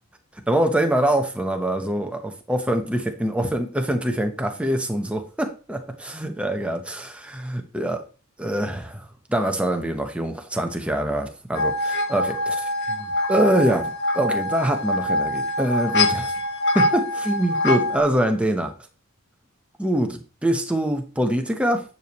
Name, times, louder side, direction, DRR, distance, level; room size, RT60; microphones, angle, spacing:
voice 1, 0.5-8.0 8.4-16.3 16.7-18.7 19.8-21.8, right 1 dB, 5° right, 4 dB, 1.0 m, -24 dB
sound 1, 11.6-18.0, left 1 dB, 55° left, 1.2 m, -24 dB
10.0 x 6.9 x 3.1 m, 0.34 s
head